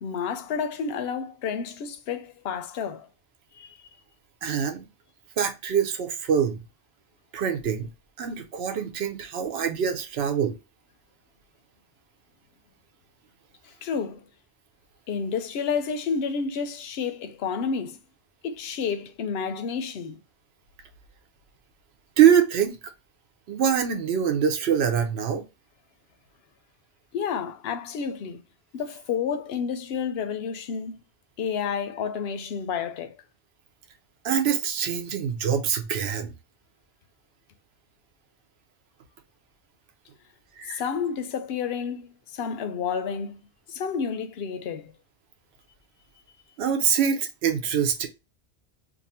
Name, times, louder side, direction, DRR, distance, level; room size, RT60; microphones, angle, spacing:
voice 1, 0.0-3.1 3.6-3.7 13.8-14.2 15.1-18.0 18.4-20.2 27.1-28.4 28.7-31.0 31.4-33.1 40.7-43.4 43.7-44.9, left 6 dB, 65° left, 0.8 m, -30 dB
voice 2, 4.4-4.9 5.4-6.6 7.3-7.9 8.2-10.6 22.2-22.8 23.5-25.4 34.2-36.3 40.6-40.8 46.6-48.1, right 8 dB, 70° right, 0.9 m, -24 dB
2.6 x 2.6 x 4.1 m
omnidirectional pair, 1.2 m